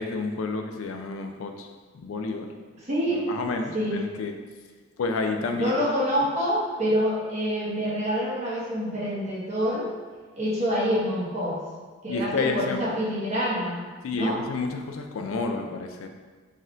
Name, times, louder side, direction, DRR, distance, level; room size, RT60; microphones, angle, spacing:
voice 1, 0.0-1.7 1.9-2.5 3.3-4.4 5.0-5.7 12.1-12.8 14.0-16.1, left 3 dB, 75° left, 5 dB, 0.4 m, -29 dB
voice 2, 2.9-3.2 3.7-4.0 5.6-9.9 10.4-11.6 12.0-14.4, equal, 35° right, -8 dB, 1.1 m, -26 dB
4.2 x 3.7 x 2.4 m, 1.4 s
head